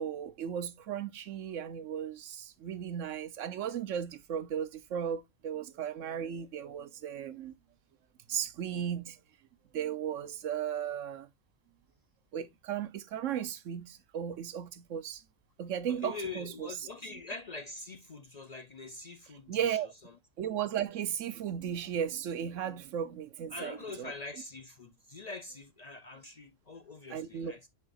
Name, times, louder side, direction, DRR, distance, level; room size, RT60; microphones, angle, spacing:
voice 1, 0.0-7.5 8.3-9.2 9.7-11.3 12.3-15.2 15.6-16.7 19.5-19.9 20.4-24.1 27.1-27.5, right 9 dB, 85° right, 1.1 m, -35 dB
voice 2, 15.9-20.1 23.5-27.7, left 3 dB, 50° left, 0.5 m, -44 dB
7.5 x 5.6 x 2.5 m
omnidirectional pair, 1.3 m